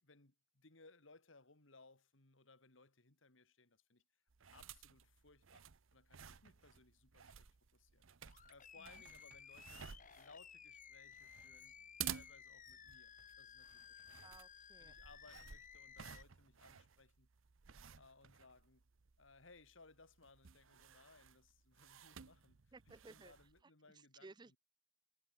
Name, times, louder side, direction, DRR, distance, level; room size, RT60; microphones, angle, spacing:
voice 1, 0.0-4.0 4.4-8.1 8.5-9.9 10.1-14.3 14.8-17.3 18.0-18.8 19.2-24.6, left 3 dB, 75° left, 2.7 m, -65 dB
sound 1, 4.3-23.6, right 9 dB, 85° right, 0.8 m, -54 dB
Animal, 8.2-16.2, left 8 dB, 45° left, 2.3 m, -58 dB
voice 2, 14.2-14.9 22.7-23.3 24.2-24.6, right 3 dB, 20° right, 0.5 m, -58 dB
head